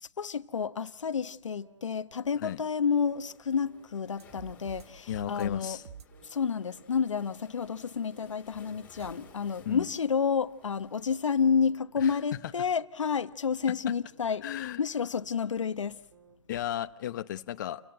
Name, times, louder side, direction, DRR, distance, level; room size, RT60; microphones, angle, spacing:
voice 1, 0.2-5.8 6.2-14.4 14.8-16.0, left 6 dB, 90° left, 1.2 m, -30 dB
sound 1, 0.6-1.4 1.6-1.9 2.1-2.4 2.6-2.9 3.1-3.4 3.6-3.9 4.1-4.4 4.6-4.9 5.1-5.4 5.6-5.9 6.1-6.4 6.6-6.9 7.1-7.4 7.6-7.9 8.1-8.4 8.6-8.9 9.1-9.4 9.6-9.9 10.1-10.4 10.6-10.9 11.1-11.4 11.6-11.9 12.1-12.4 12.6-12.9 13.1-13.4 13.6-13.9 14.1-14.4 14.6-14.9 15.1-15.4 15.6-15.9 16.1-16.4, right 7 dB, 40° right, 3.2 m, -60 dB
Waves surf, 2.9-11.6, left 5 dB, 10° left, 3.1 m, -60 dB
sound 2, 4.2-4.8 5.1-5.6 5.8-6.0 9.0-9.1, right 7 dB, 60° right, 1.6 m, -45 dB
voice 2, 5.1-5.8 9.6-9.8 12.0-12.2 14.4-14.8 16.5-17.8, left 11 dB, 40° left, 0.9 m, -34 dB
30.0 x 17.0 x 7.9 m
hypercardioid pair, 160°, 15 cm